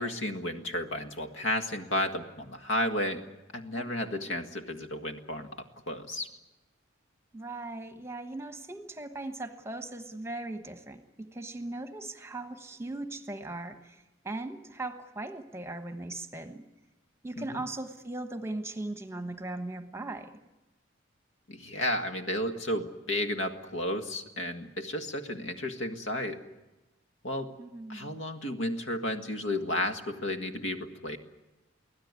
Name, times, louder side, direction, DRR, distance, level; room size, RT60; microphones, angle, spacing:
voice 1, 0.0-3.3 3.5-5.5 5.9-6.3 17.3-17.6 21.5-26.4 27.2-27.5 27.9-31.2, left 1 dB, 65° left, 6 dB, 1.8 m, -32 dB
voice 2, 3.7-4.2 7.3-16.6 17.2-20.3 27.6-28.2, right 2 dB, 10° right, 7 dB, 1.2 m, -39 dB
24.5 x 16.5 x 9.7 m, 1.1 s
head